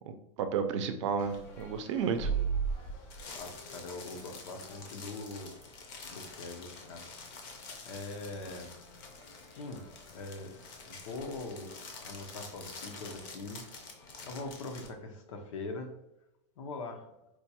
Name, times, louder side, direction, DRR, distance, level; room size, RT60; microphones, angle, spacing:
voice 1, 0.1-2.3, right 6 dB, 75° right, 8 dB, 0.5 m, -32 dB
sound 1, 1.2-14.9, right 3 dB, 45° left, 0.6 m, -42 dB
voice 2, 3.3-5.5 6.1-7.1 7.9-8.7 9.5-10.5 10.9-11.7 12.0-13.6 14.2-15.9 16.6-17.1, left 3 dB, 90° left, 5 dB, 0.7 m, -42 dB
4.4 x 2.2 x 2.8 m, 0.87 s
supercardioid pair, 170°, 16 cm